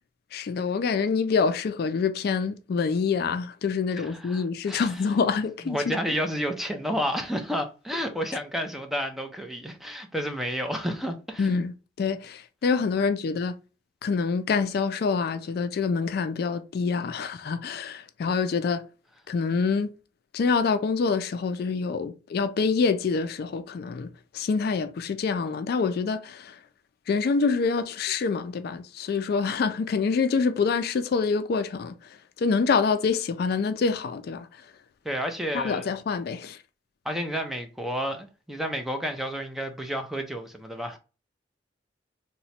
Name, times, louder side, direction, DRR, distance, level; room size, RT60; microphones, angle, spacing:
voice 1, 0.3-5.9 11.4-13.5 14.0-18.8 19.3-19.9 20.3-24.1 24.3-26.6 27.1-31.9 32.4-34.5 35.5-36.6, left 5 dB, 55° left, 0.3 m, -26 dB
voice 2, 4.0-5.0 5.6-11.5 35.0-35.9 37.0-41.0, equal, ahead, 0.5 m, -31 dB
2.9 x 2.1 x 4.1 m
head